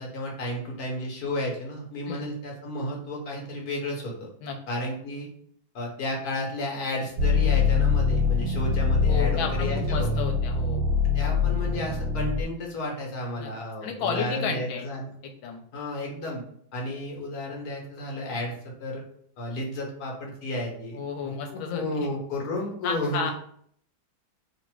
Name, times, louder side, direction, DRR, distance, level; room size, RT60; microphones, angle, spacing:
voice 1, 0.0-4.3 4.7-5.3 5.7-10.2 11.1-15.1 15.7-16.4 16.7-19.0 19.4-23.3, left 1 dB, 55° left, -1 dB, 1.5 m, -32 dB
sound 1, 7.2-12.4, left 5 dB, 85° right, 1.4 m, -24 dB
voice 2, 9.0-10.8 13.4-13.5 13.8-14.9 15.2-15.6 20.9-22.1 22.8-23.3, left 6 dB, 90° left, 3 dB, 1.4 m, -32 dB
3.2 x 2.6 x 4.5 m, 0.64 s
omnidirectional pair, 2.1 m